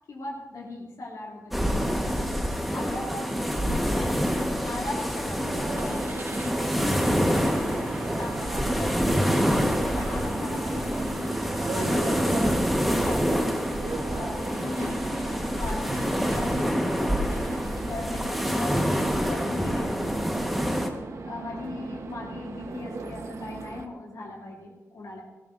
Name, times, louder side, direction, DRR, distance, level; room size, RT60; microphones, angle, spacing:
voice 1, 0.1-2.1 2.7-4.2 4.6-11.4 11.7-13.7 14.1-15.2 15.6-17.4 17.9-20.9 21.2-25.2, left 2 dB, 80° left, -3 dB, 2.9 m, -39 dB
sound 1, 1.5-20.9, equal, ahead, 1.4 m, -27 dB
sound 2, 5.4-23.9, right 3 dB, 60° right, 1.2 m, -37 dB
Car / Engine starting, 5.8-12.6, right 2 dB, 40° right, 1.3 m, -40 dB
19.0 x 17.5 x 2.7 m, 1.1 s
wide cardioid pair, 160°, 6 cm